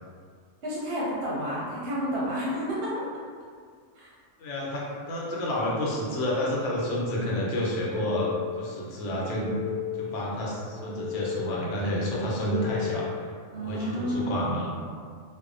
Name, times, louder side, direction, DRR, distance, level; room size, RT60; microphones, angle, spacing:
voice 1, 0.6-3.0 3.9-4.1 13.5-14.5, equal, 60° right, -7 dB, 0.7 m, -30 dB
voice 2, 4.4-9.5 10.0-13.1 13.6-14.7, left 1 dB, 75° left, -5 dB, 0.9 m, -29 dB
sound 1, 7.6-8.7 9.1-10.2 10.6-11.7 12.1-13.3, left 10 dB, 35° left, 0.3 m, -35 dB
2.6 x 2.0 x 2.4 m, 2.1 s
omnidirectional pair, 1.3 m